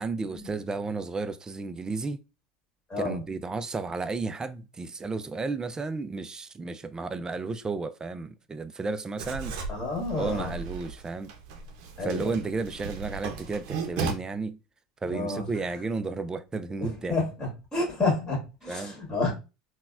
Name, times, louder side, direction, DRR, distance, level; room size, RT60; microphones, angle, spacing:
voice 1, 0.0-2.2 3.0-9.6 10.1-11.3 12.0-14.6 15.0-17.2 18.7-19.0, right 3 dB, 20° right, 0.4 m, -33 dB
Writing, 9.2-14.1, right 5 dB, 65° right, 0.6 m, -36 dB
voice 2, 9.7-10.5 12.0-12.4 15.1-15.4 16.8-19.3, left 3 dB, 15° left, 1.8 m, -30 dB
3.9 x 2.2 x 2.4 m
hypercardioid pair, 85°, 4 cm